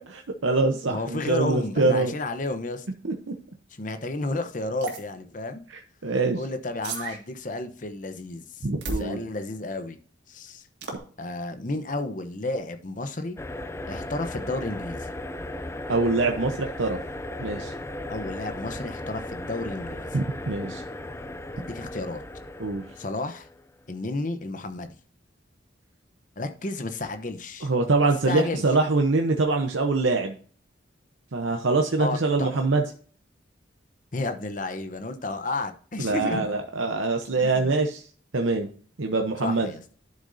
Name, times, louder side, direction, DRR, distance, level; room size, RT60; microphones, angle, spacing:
voice 1, 0.1-2.1 3.0-3.1 5.7-6.4 8.6-9.2 15.9-17.0 17.4-17.7 20.1-20.8 22.6-22.8 27.6-30.4 31.3-32.8 36.0-38.0 38.3-38.7 39.0-39.7, right 3 dB, 85° right, 3 dB, 0.9 m, -24 dB
voice 2, 0.9-2.8 3.8-5.6 6.4-8.7 8.9-10.0 10.3-10.6 11.2-13.4 13.9-15.1 18.1-20.1 21.6-22.2 23.0-23.5 23.9-24.9 26.4-27.7 28.3-28.6 32.0-32.5 34.1-36.4 37.4-37.8 39.4-39.8, left 2 dB, 40° left, 8 dB, 0.9 m, -32 dB
sound 1, 4.8-5.0 6.8-7.2 8.8-9.1 10.8-11.0, right 2 dB, 60° right, 2.2 m, -32 dB
sound 2, 13.4-23.7, left 1 dB, 15° left, 0.4 m, -36 dB
11.5 x 6.5 x 2.7 m, 0.43 s
head